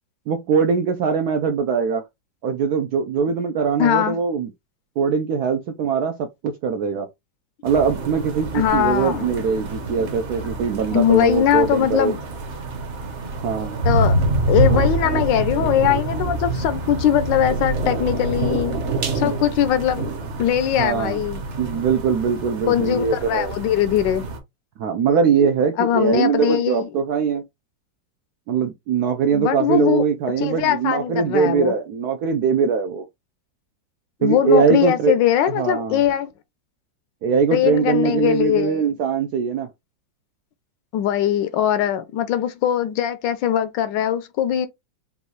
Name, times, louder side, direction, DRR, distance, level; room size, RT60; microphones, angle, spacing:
voice 1, 0.3-2.0 2.4-4.5 5.0-7.1 7.6-12.1 13.4-13.8 20.8-21.2 21.6-23.5 24.8-27.4 28.5-33.1 34.2-35.1 35.5-36.0 37.2-39.7, right 6 dB, 75° right, 0.9 m, -21 dB
voice 2, 3.8-4.2 8.5-9.3 10.9-12.2 13.8-14.2 14.5-18.7 19.1-20.1 20.4-21.4 22.7-24.2 25.8-26.9 29.3-30.0 30.4-31.7 34.2-36.3 37.5-38.9 40.9-44.7, left 10 dB, 75° left, 1.2 m, -21 dB
sound 1, 7.7-24.4, right 2 dB, 50° right, 0.9 m, -26 dB
5.3 x 2.3 x 3.1 m
omnidirectional pair, 2.1 m